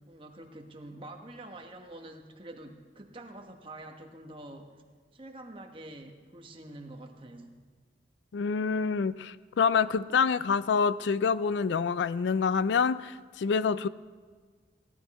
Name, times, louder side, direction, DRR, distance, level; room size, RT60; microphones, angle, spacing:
voice 1, 0.1-4.8 5.1-7.6, right 1 dB, 30° right, 3 dB, 1.1 m, -46 dB
voice 2, 8.3-13.9, left 5 dB, 75° left, 17 dB, 0.4 m, -27 dB
17.0 x 11.5 x 4.2 m, 1.5 s
head